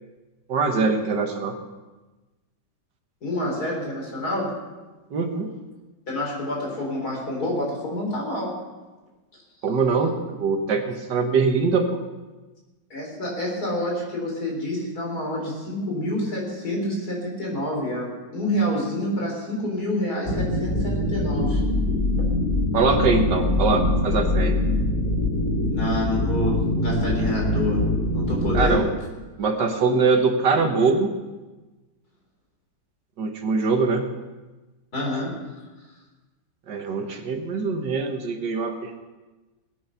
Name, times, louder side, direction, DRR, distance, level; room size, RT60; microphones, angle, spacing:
voice 1, 0.5-1.6 5.1-5.5 9.6-12.0 22.7-24.6 28.5-28.9 29.4-31.1 33.2-34.1 36.7-39.1, right 4 dB, 75° right, 5 dB, 2.0 m, -23 dB
voice 2, 3.2-4.5 6.1-8.6 12.9-21.6 25.7-27.9 28.1-28.8 34.9-35.4, left 1 dB, 60° left, -1 dB, 4.6 m, -28 dB
sound 1, 20.3-28.7, left 1 dB, 40° left, 5.0 m, -23 dB
20.0 x 8.9 x 5.7 m, 1.2 s
omnidirectional pair, 1.9 m